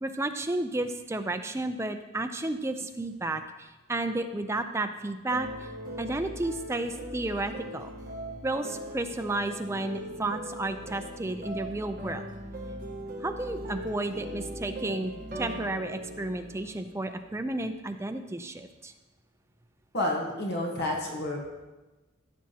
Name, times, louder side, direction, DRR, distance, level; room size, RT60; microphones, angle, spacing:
voice 1, 0.0-5.7 6.0-7.9 8.4-12.2 13.2-18.9, right 2 dB, 15° right, 7 dB, 0.4 m, -32 dB
sound 1, 5.3-17.4, right 1 dB, 40° right, 1.2 m, -40 dB
voice 2, 19.9-21.5, left 1 dB, 50° left, 0 dB, 1.2 m, -30 dB
15.0 x 7.2 x 2.9 m, 1.1 s
head